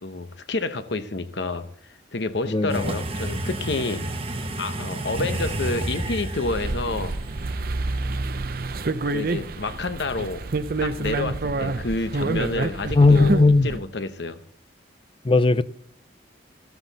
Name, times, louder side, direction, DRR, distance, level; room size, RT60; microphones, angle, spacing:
voice 1, 0.0-4.0 4.6-7.2 9.1-10.5 10.8-14.4, left 3 dB, 70° left, 0.9 m, -29 dB
voice 2, 2.5-2.8 13.0-13.7 15.2-15.6, left 3 dB, 30° left, 0.4 m, -17 dB
sound 1, 2.7-11.2, right 1 dB, 30° right, 1.3 m, -32 dB
sound 2, 6.5-13.8, right 3 dB, 55° right, 0.6 m, -28 dB
13.5 x 13.0 x 4.1 m
head